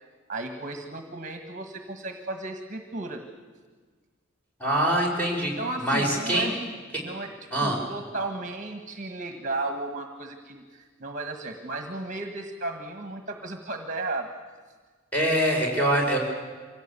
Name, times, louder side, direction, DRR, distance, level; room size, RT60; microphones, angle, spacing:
voice 1, 0.3-3.2 5.6-6.6 7.0-7.3 7.6-14.3, right 2 dB, 35° right, 5 dB, 1.5 m, -34 dB
voice 2, 4.6-6.5 6.9-7.0 7.5-7.8 15.1-16.2, right 1 dB, 10° left, -2 dB, 4.8 m, -24 dB
24.5 x 17.0 x 8.4 m, 1.5 s
head